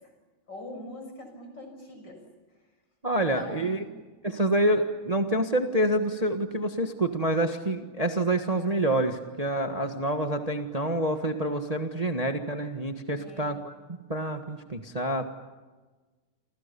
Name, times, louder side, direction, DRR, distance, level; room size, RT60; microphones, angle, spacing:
voice 1, 0.5-2.2 3.1-4.0 13.1-13.5, left 1 dB, 55° left, 5 dB, 6.9 m, -43 dB
voice 2, 3.0-3.8 4.2-13.7 14.1-15.2, right 1 dB, 20° right, 5 dB, 1.5 m, -27 dB
29.0 x 27.0 x 7.0 m, 1.3 s
omnidirectional pair, 2.3 m